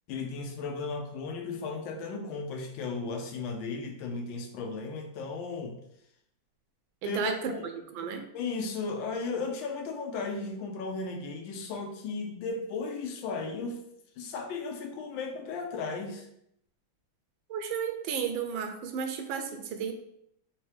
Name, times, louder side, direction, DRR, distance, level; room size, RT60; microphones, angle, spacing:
voice 1, 0.1-5.8 7.0-7.6 8.3-13.8 14.2-16.3, left 4 dB, 80° left, 4 dB, 1.4 m, -35 dB
voice 2, 7.0-7.4 7.7-8.2 17.5-19.9, right 7 dB, 80° right, 6 dB, 1.3 m, -33 dB
4.5 x 2.9 x 3.2 m, 0.74 s
omnidirectional pair, 2.2 m